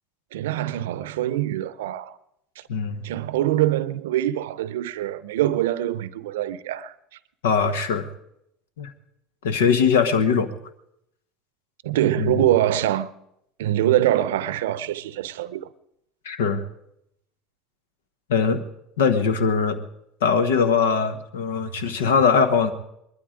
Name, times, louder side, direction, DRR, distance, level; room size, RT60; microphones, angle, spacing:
voice 1, 0.3-2.2 2.6-2.7 3.0-6.9 11.8-13.1 13.6-15.7, right 13 dB, 80° right, 0.6 m, -24 dB
voice 2, 2.7-3.0 7.4-8.1 8.8-8.9 9.4-10.5 12.2-12.4 16.2-16.6 18.3-18.6 19.0-19.8 20.2-22.7, left 6 dB, 85° left, 1.2 m, -21 dB
20.0 x 12.5 x 5.0 m
hypercardioid pair, 80°, 0 cm